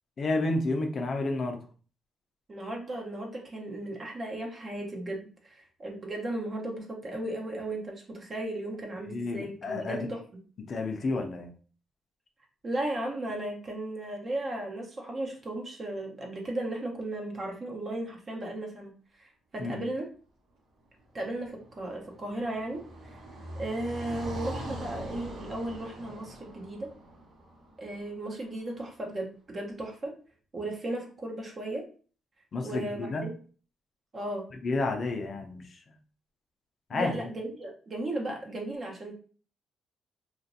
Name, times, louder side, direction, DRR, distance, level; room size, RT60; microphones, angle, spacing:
voice 1, 0.2-1.6 9.1-10.1 10.7-11.5 19.6-19.8 32.5-33.3 34.6-35.6 36.9-37.3, left 2 dB, 50° left, 4 dB, 0.5 m, -30 dB
voice 2, 2.5-10.2 12.6-18.9 19.2-20.1 21.1-22.8 23.6-26.9 27.8-30.1 30.5-31.8 32.6-33.4 34.1-34.5 36.9-39.1, right 1 dB, 40° right, 1 dB, 0.9 m, -35 dB
Car passing by, 21.3-28.5, right 1 dB, 75° right, 1.0 m, -42 dB
3.0 x 2.5 x 2.6 m, 0.40 s
cardioid pair, 90°, 0 cm